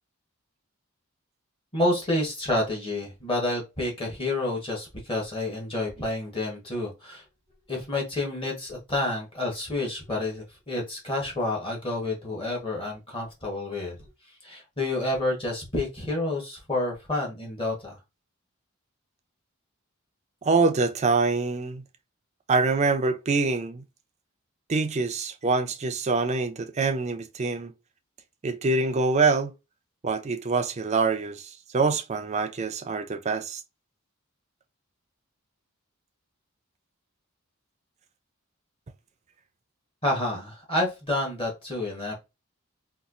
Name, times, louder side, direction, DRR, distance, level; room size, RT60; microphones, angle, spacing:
voice 1, 1.7-7.2 7.7-14.0 14.4-18.0 40.0-42.1, left 2 dB, 25° left, 1.1 m, -29 dB
voice 2, 20.4-21.8 22.5-23.8 24.7-27.7 28.4-29.5 30.0-33.6, right 4 dB, 30° right, 0.4 m, -25 dB
4.2 x 2.3 x 2.4 m
head